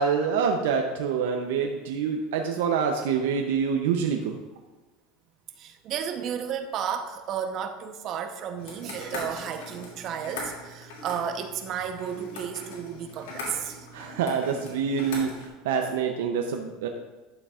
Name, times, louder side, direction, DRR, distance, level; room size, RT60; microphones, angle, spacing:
voice 1, 0.0-4.4 13.9-16.9, right 6 dB, 85° right, 3 dB, 0.7 m, -26 dB
voice 2, 5.6-13.9, right 8 dB, 45° right, 6 dB, 0.9 m, -33 dB
sound 1, 8.6-15.5, left 2 dB, 85° left, 2.5 m, -40 dB
11.5 x 6.8 x 2.5 m, 1.2 s
supercardioid pair, 125°, 0 cm